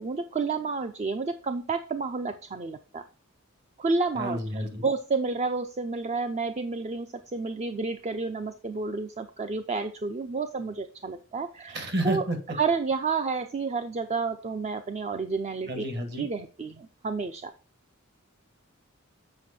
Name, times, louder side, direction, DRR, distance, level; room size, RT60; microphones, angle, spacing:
voice 1, 0.0-3.0 3.8-12.2 12.5-15.8 16.2-17.5, right 4 dB, 35° right, 8 dB, 0.5 m, -30 dB
voice 2, 4.2-4.9 11.7-12.4 15.7-16.3, right 1 dB, 55° right, 6 dB, 1.9 m, -30 dB
7.8 x 5.4 x 4.2 m, 0.37 s
head